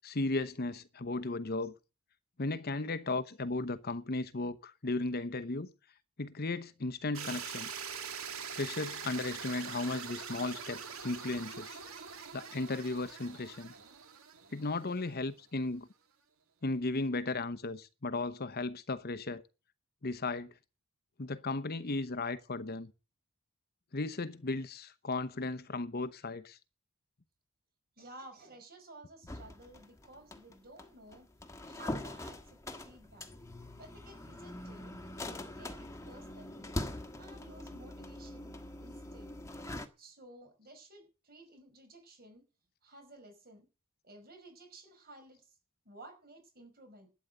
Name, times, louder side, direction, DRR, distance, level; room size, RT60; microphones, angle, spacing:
voice 1, 0.0-1.7 2.4-5.7 6.2-7.7 8.6-11.8 12.3-13.7 14.5-15.9 16.6-19.4 20.0-20.5 21.2-22.9 23.9-26.6, left 2 dB, 45° left, 0.9 m, -35 dB
sound 1, 7.1-15.2, right 6 dB, 80° right, 2.2 m, -44 dB
voice 2, 28.0-31.3 31.7-33.3 33.8-35.0 35.3-36.8 37.2-39.3 40.0-42.5 42.8-43.7 44.0-45.5 45.9-47.1, right 2 dB, 45° right, 5.3 m, -54 dB
sound 2, 29.3-39.9, left 1 dB, 15° left, 1.5 m, -43 dB
12.5 x 9.4 x 7.9 m
head